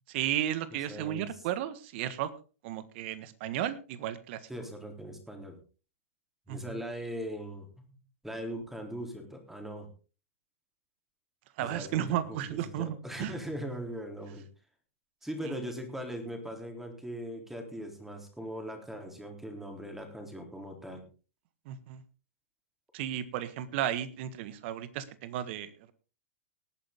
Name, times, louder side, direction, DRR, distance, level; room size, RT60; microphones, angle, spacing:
voice 1, 0.1-2.3 2.6-4.4 6.5-6.8 11.6-13.3 15.4-15.7 21.6-22.0 22.9-25.7, right 11 dB, 50° right, 14 dB, 1.6 m, -34 dB
voice 2, 0.9-1.3 4.5-5.6 6.5-7.9 8.2-9.9 11.6-14.4 15.2-21.0, equal, 5° right, 4 dB, 3.7 m, -40 dB
19.0 x 9.1 x 3.7 m, 0.35 s
hypercardioid pair, 110°, 8 cm